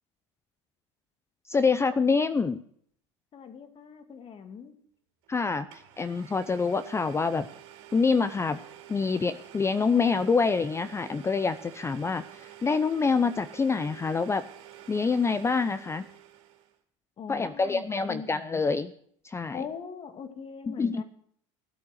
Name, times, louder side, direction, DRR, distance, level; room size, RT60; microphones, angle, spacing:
voice 1, 1.5-2.6 5.3-7.5 7.9-8.6 8.9-14.5 14.9-16.1 17.3-18.9 19.2-19.6 20.7-21.0, left 4 dB, 15° left, 13 dB, 0.6 m, -26 dB
voice 2, 3.3-4.8 17.2-18.6 19.5-21.0, left 6 dB, 35° left, 8 dB, 2.0 m, -41 dB
Domestic sounds home sounds, 5.2-5.3 5.7-16.8, right 12 dB, 70° right, 2.7 m, -49 dB
15.5 x 8.3 x 6.5 m, 0.64 s
hypercardioid pair, 90°, 16 cm